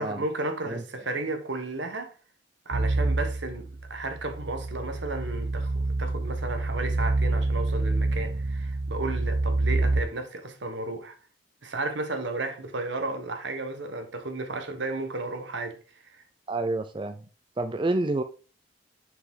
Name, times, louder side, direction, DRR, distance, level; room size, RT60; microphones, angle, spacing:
voice 1, 0.0-2.1 2.6-11.2 11.6-16.2, right 2 dB, 70° right, 1.4 m, -33 dB
sound 1, 2.7-10.0, right 2 dB, 55° right, 0.8 m, -27 dB
voice 2, 16.5-17.3 17.6-18.2, right 2 dB, 25° right, 0.4 m, -28 dB
6.7 x 5.0 x 3.8 m
head